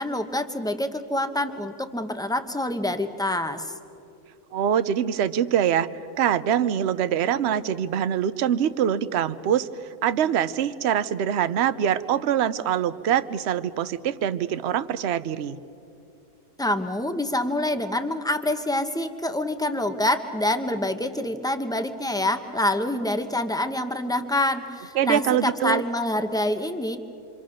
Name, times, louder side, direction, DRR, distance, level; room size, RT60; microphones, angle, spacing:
voice 1, 0.0-3.7 16.6-27.0, left 1 dB, 5° left, 8 dB, 0.7 m, -26 dB
voice 2, 4.5-9.7 10.0-15.6 25.0-25.8, right 9 dB, 55° right, 13 dB, 0.9 m, -24 dB
27.5 x 25.0 x 6.4 m, 2.7 s
omnidirectional pair, 1.6 m